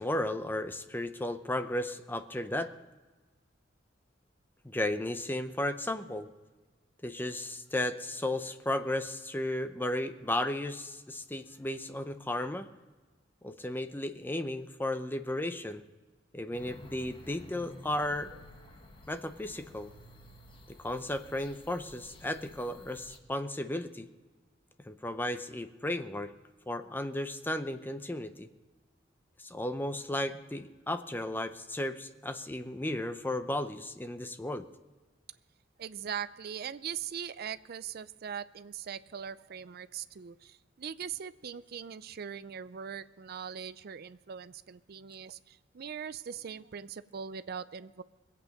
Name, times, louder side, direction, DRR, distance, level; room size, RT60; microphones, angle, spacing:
voice 1, 0.0-2.7 4.6-6.3 7.0-12.7 13.4-15.8 16.3-18.4 19.1-19.9 20.7-24.1 24.9-26.3 26.7-28.5 29.4-34.6, left 1 dB, 10° left, 9 dB, 0.6 m, -34 dB
sound 1, 16.5-23.2, left 1 dB, 25° left, 1.2 m, -53 dB
voice 2, 35.8-48.0, right 7 dB, 55° right, 15 dB, 0.5 m, -41 dB
21.5 x 8.5 x 5.2 m, 1.3 s
head